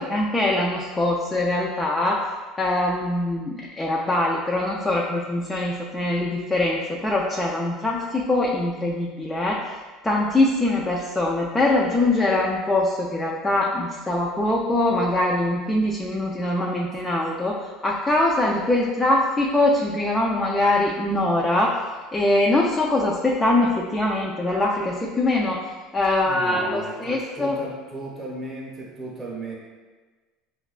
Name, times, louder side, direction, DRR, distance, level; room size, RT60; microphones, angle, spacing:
voice 1, 0.0-2.2 2.6-9.8 10.0-17.6 17.8-21.7 22.1-25.6 25.9-27.6, left 2 dB, 10° left, -3 dB, 0.3 m, -23 dB
voice 2, 26.2-29.5, right 2 dB, 15° right, -3 dB, 0.7 m, -35 dB
5.0 x 2.2 x 2.4 m, 1.3 s
cardioid pair, 140°, 0 cm